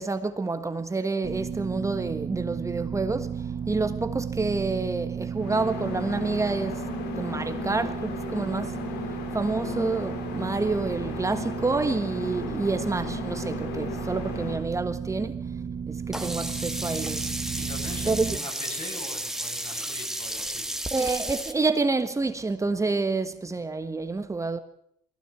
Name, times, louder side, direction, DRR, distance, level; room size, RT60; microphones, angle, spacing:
voice 1, 0.0-6.8 7.2-8.8 9.3-15.4 15.9-17.3 18.0-18.4 20.9-24.6, right 3 dB, 20° right, 1.4 m, -28 dB
sound 1, 1.2-18.4, right 7 dB, 35° right, 1.0 m, -34 dB
sound 2, 5.4-14.7, left 5 dB, 85° left, 3.8 m, -36 dB
Sink (filling or washing), 16.1-21.5, right 1 dB, 5° right, 1.7 m, -33 dB
voice 2, 17.5-20.7, left 2 dB, 40° left, 7.4 m, -42 dB
21.5 x 16.0 x 8.3 m
cardioid pair, 110°, 17 cm